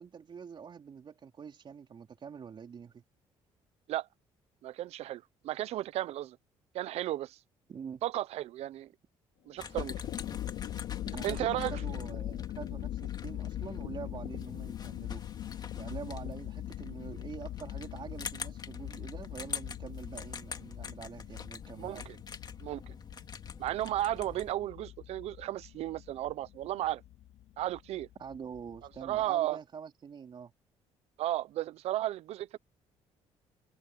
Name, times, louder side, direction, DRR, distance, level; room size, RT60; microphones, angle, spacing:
voice 1, 0.0-3.0 7.7-8.0 11.1-15.2 15.8-22.1 28.2-30.5, right 7 dB, 45° right, 4.2 m, -45 dB
voice 2, 4.6-6.4 6.7-7.4 8.0-8.9 9.5-10.0 11.2-11.8 21.8-22.2 22.6-22.8 23.6-27.0 27.6-28.1 29.0-29.6 31.2-32.6, right 14 dB, 70° right, 0.7 m, -34 dB
sound 1, 9.6-29.3, left 13 dB, 75° left, 2.6 m, -42 dB
sound 2, 9.6-24.5, left 6 dB, 40° left, 2.5 m, -46 dB
supercardioid pair, 80°, 11 cm